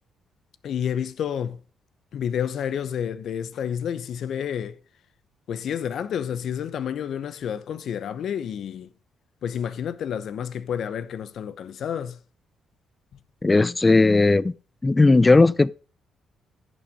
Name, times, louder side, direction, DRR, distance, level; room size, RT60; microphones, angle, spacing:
voice 1, 0.6-1.6 2.1-4.8 5.5-8.9 9.4-12.2, left 8 dB, 65° left, 0.8 m, -29 dB
voice 2, 13.4-14.5 14.8-15.7, left 3 dB, 20° left, 0.4 m, -17 dB
10.5 x 6.2 x 5.1 m
cardioid pair, 90°, 0 cm